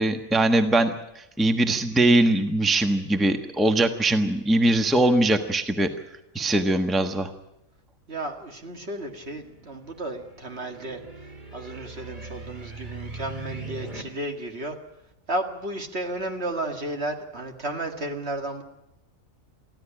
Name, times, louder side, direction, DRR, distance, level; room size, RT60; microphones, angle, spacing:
voice 1, 0.0-5.9 6.3-7.3, right 1 dB, ahead, 6 dB, 1.1 m, -21 dB
voice 2, 8.1-11.0 11.5-14.8 15.3-18.6, right 1 dB, 50° right, 4 dB, 2.2 m, -33 dB
sound 1, 9.0-14.0, right 3 dB, 35° right, 2.5 m, -40 dB
24.0 x 15.0 x 8.9 m, 0.87 s
omnidirectional pair, 1.4 m